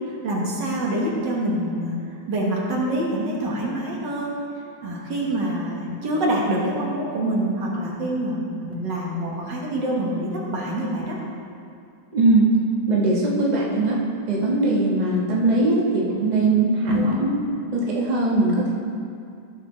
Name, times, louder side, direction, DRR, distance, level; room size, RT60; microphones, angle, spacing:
voice 1, 0.2-1.9 2.3-4.4 4.8-11.2 16.9-17.1, right 1 dB, 70° right, -3 dB, 2.1 m, -25 dB
voice 2, 12.1-12.5 12.9-14.0 14.3-17.3 17.7-18.7, right 2 dB, 25° right, -4 dB, 1.2 m, -20 dB
14.5 x 6.5 x 3.2 m, 2.4 s
omnidirectional pair, 2.0 m